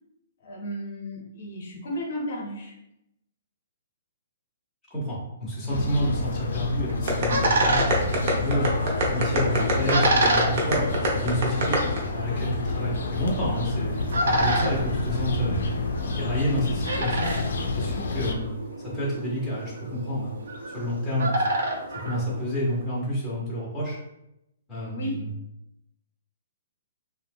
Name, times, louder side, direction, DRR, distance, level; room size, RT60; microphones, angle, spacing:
voice 1, 0.4-2.7 24.9-25.2, equal, 50° left, 0 dB, 0.6 m, -34 dB
voice 2, 4.9-8.7 9.0-10.8 11.1-11.8 12.1-13.9 14.2-15.6 16.1-17.3 17.7-18.5 18.8-20.4 20.7-21.6 21.9-24.0 24.7-25.3, equal, 5° left, -8 dB, 0.6 m, -29 dB
sound 1, 5.7-18.3, left 3 dB, 90° left, 0.4 m, -29 dB
sound 2, 6.6-22.9, right 1 dB, 85° right, 0.6 m, -30 dB
sound 3, 7.1-12.0, right 1 dB, 35° right, 0.6 m, -24 dB
2.6 x 2.0 x 3.4 m, 0.86 s
hypercardioid pair, 175°, 0 cm